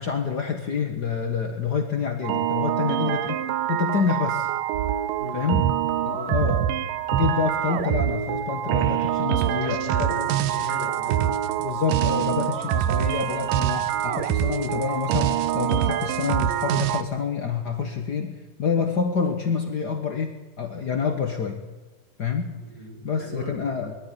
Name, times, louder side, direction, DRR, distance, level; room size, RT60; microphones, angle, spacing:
voice 1, 0.0-3.4 3.7-4.5 5.3-5.7 6.0-10.3 11.6-21.6 22.2-22.6 23.0-24.0, left 6 dB, 70° left, 4 dB, 0.9 m, -27 dB
sound 1, 2.2-17.0, right 11 dB, 75° right, 2.3 m, -25 dB
voice 2, 5.2-5.6 6.0-6.5 9.2-11.3 22.6-23.7, equal, 15° right, -2 dB, 7.4 m, -37 dB
21.0 x 13.0 x 9.9 m, 1.3 s
omnidirectional pair, 4.2 m